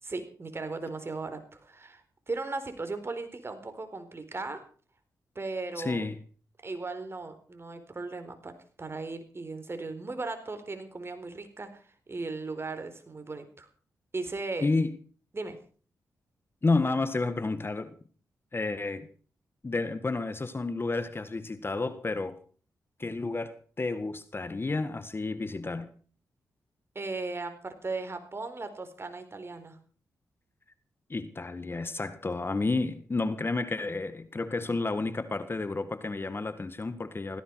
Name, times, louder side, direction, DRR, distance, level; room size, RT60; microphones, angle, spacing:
voice 1, 0.0-4.6 5.3-6.0 6.6-8.5 8.8-13.7 14.1-14.7 15.3-15.6 26.9-29.8, right 3 dB, 35° right, 4.3 m, -37 dB
voice 2, 5.8-6.2 14.6-15.0 16.6-17.9 18.5-19.1 19.6-22.4 23.0-25.9 31.1-37.4, left 3 dB, 35° left, 1.7 m, -31 dB
17.5 x 15.5 x 4.8 m
cardioid pair, 60°, 7 cm